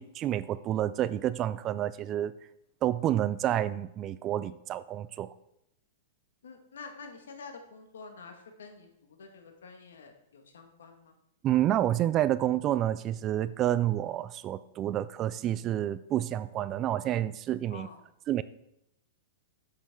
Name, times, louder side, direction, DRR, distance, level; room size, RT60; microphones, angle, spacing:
voice 1, 0.0-2.3 2.8-5.3 11.4-17.9 18.3-18.4, right 12 dB, 30° right, 16 dB, 0.3 m, -29 dB
voice 2, 6.4-11.1 17.7-18.0, left 4 dB, 85° left, 5 dB, 1.7 m, -48 dB
8.4 x 7.6 x 3.7 m, 0.81 s
hypercardioid pair, 135°, 0 cm